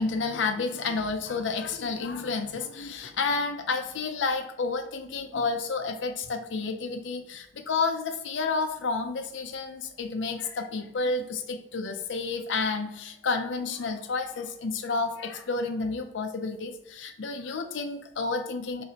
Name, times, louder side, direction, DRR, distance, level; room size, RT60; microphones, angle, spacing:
voice 1, 0.0-18.8, left 4 dB, 80° left, 5 dB, 0.5 m, -30 dB
3.8 x 2.9 x 4.0 m, 0.78 s
head